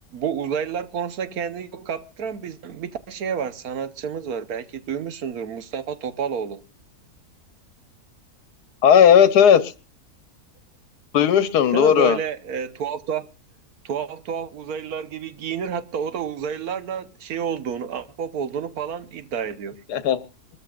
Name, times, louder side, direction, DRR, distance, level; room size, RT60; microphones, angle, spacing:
voice 1, 0.1-6.6 11.7-13.3 13.8-19.8, right 7 dB, 70° right, 1.4 m, -30 dB
voice 2, 8.8-9.7 11.1-12.2 19.9-20.2, left 8 dB, 90° left, 1.5 m, -15 dB
25.5 x 13.5 x 2.4 m
omnidirectional pair, 1.7 m